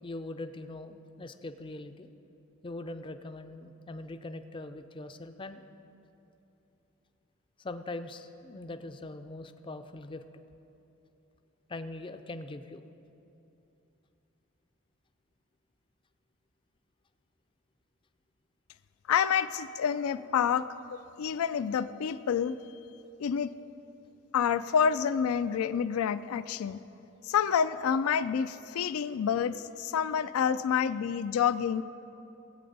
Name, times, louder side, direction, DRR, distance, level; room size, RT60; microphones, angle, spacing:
voice 1, 0.0-2.1 2.6-5.6 7.6-10.2 11.7-12.8, left 2 dB, 25° left, 9 dB, 0.4 m, -41 dB
voice 2, 19.1-20.7 21.2-22.6 23.2-23.5 24.3-26.8 27.2-31.8, left 7 dB, 85° left, 14 dB, 0.3 m, -28 dB
19.0 x 8.5 x 4.0 m, 2.9 s
head